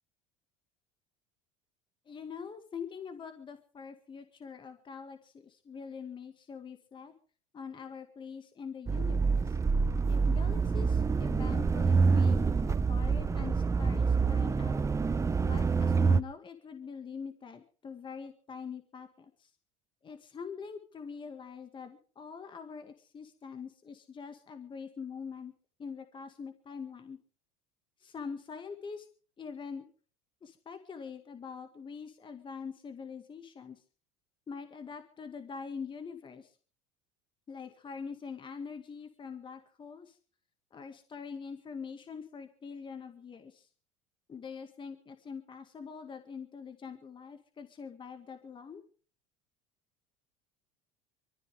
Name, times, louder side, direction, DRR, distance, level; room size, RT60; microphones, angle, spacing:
voice 1, 2.1-7.1 7.5-9.6 10.0-14.9 15.4-19.5 20.0-25.5 25.8-27.2 28.0-29.1 29.4-29.9 30.4-33.8 34.5-36.5 37.5-40.2 40.7-43.7 44.3-48.8, left 6 dB, 30° left, 7 dB, 1.9 m, -44 dB
sound 1, 8.9-16.2, right 5 dB, 20° right, 0.7 m, -27 dB
24.0 x 14.0 x 3.6 m, 0.40 s
supercardioid pair, 90°, 16 cm